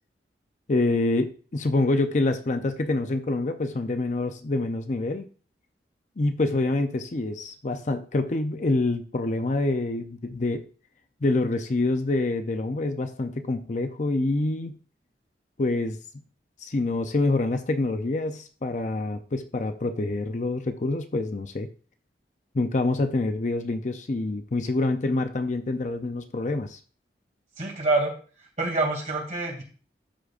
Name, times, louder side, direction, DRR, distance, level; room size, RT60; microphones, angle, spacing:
voice 1, 0.7-5.3 6.2-10.6 11.2-14.8 15.6-16.0 16.6-21.7 22.5-26.8, left 2 dB, 40° left, 8 dB, 0.5 m, -26 dB
voice 2, 27.6-28.1 28.6-29.6, right 2 dB, 40° right, 1 dB, 2.4 m, -26 dB
12.5 x 5.0 x 2.5 m, 0.39 s
head